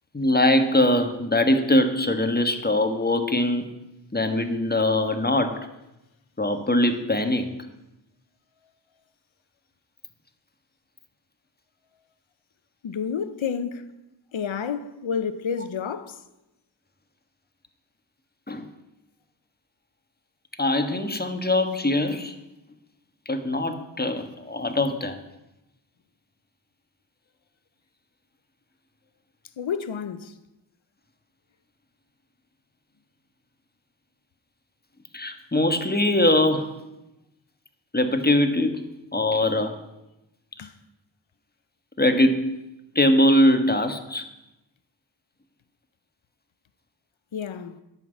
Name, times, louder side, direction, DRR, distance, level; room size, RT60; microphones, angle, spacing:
voice 1, 0.1-3.7 4.1-5.7 6.4-7.5 18.5-18.6 20.6-22.4 23.2-25.2 35.1-36.7 37.9-38.8 39.1-39.8 40.6-40.7 42.0-42.6 42.9-44.3, left 1 dB, 20° left, 1.4 m, -22 dB
voice 2, 12.8-13.9 14.3-16.2 29.6-30.4 40.6-40.7 47.3-47.8, left 7 dB, 90° left, 0.8 m, -30 dB
10.5 x 5.8 x 8.3 m
cardioid pair, 40°, 45 cm